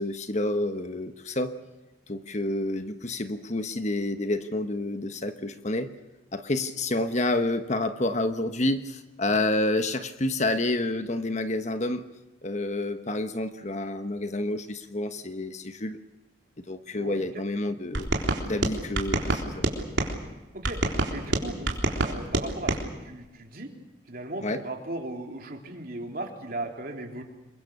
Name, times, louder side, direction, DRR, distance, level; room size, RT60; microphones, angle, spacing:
voice 1, 0.0-1.5 2.1-5.9 6.3-12.1 12.4-16.0 16.7-18.1 18.5-19.7 24.4-24.6, left 2 dB, 40° left, 9 dB, 1.2 m, -29 dB
voice 2, 17.0-17.4 20.5-20.8 21.1-21.8 22.0-23.7 24.1-27.2, right 2 dB, 50° right, 2 dB, 3.5 m, -37 dB
sound 1, 17.9-20.1 20.6-22.8, right 2 dB, 80° right, 3.8 m, -27 dB
27.0 x 22.5 x 6.8 m, 1.1 s
head